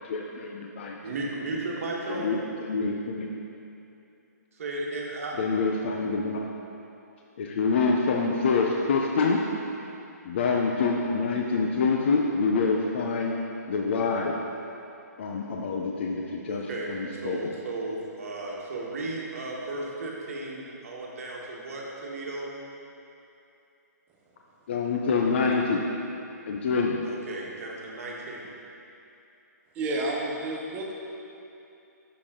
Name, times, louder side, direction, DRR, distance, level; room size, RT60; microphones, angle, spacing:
voice 1, 0.0-1.0 2.1-2.4 2.7-3.3 5.4-6.4 7.4-9.4 10.3-13.3 13.7-14.4 15.2-17.4 24.7-25.8 26.5-27.0, left 4 dB, 40° left, 0 dB, 0.5 m, -26 dB
voice 2, 1.0-2.4 4.5-5.3 16.5-22.5 27.0-28.5, right 2 dB, 50° right, -3 dB, 1.4 m, -35 dB
voice 3, 29.7-30.9, right 2 dB, 15° right, -2 dB, 0.7 m, -30 dB
7.2 x 6.7 x 3.7 m, 2.7 s
hypercardioid pair, 165°, 9 cm